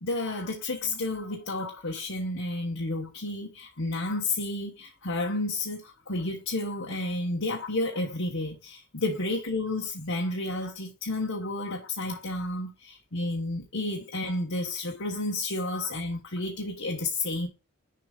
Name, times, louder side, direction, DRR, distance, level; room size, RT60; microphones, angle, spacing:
voice 1, 0.0-17.5, left 2 dB, 80° left, 1.3 m, -31 dB
6.8 x 3.0 x 5.2 m
head